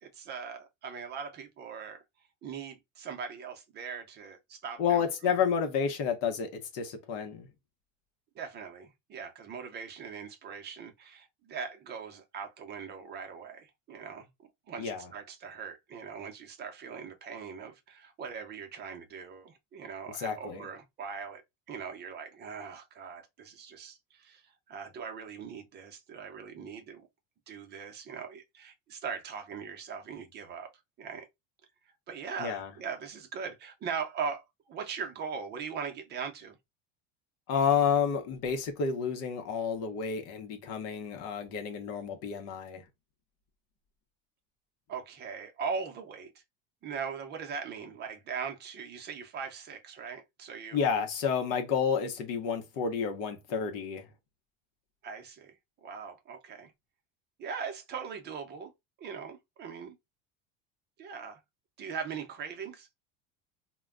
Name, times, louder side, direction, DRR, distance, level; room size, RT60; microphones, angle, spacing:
voice 1, 0.0-2.0 2.4-5.3 8.3-14.3 14.7-21.4 21.7-27.1 27.5-30.7 31.0-31.3 32.1-36.6 44.9-46.4 46.8-50.8 55.0-55.6 55.8-56.7 57.4-58.7 59.0-60.0 61.0-61.4 61.8-62.9, right 6 dB, 35° right, 0.7 m, -40 dB
voice 2, 4.8-7.5 14.8-15.1 20.2-20.7 32.4-32.7 37.5-42.8 50.7-54.1, left 6 dB, 60° left, 0.8 m, -30 dB
2.2 x 2.2 x 3.5 m
supercardioid pair, 140°, 29 cm